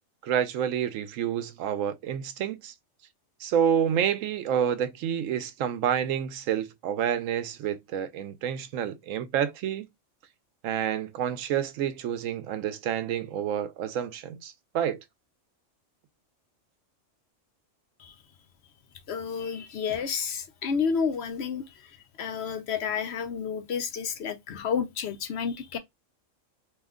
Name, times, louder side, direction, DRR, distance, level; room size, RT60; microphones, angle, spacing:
voice 1, 0.2-2.7 3.4-9.9 10.6-15.0, right 9 dB, 85° right, 0.9 m, -28 dB
voice 2, 19.1-25.8, left 6 dB, 65° left, 0.8 m, -31 dB
3.0 x 2.2 x 3.5 m
omnidirectional pair, 1.3 m